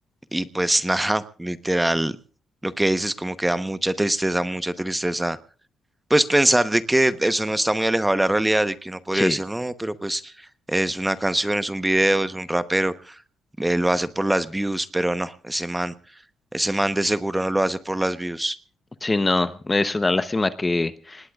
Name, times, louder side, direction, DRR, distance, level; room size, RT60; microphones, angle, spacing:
voice 1, 0.3-2.2 2.6-5.4 6.1-10.3 10.7-13.2 13.6-15.9 16.5-18.6, right 1 dB, 10° right, 13 dB, 0.9 m, -23 dB
voice 2, 19.0-21.3, left 2 dB, 20° left, 13 dB, 0.8 m, -23 dB
26.5 x 19.0 x 2.4 m, 0.40 s
cardioid pair, 90°, 0 cm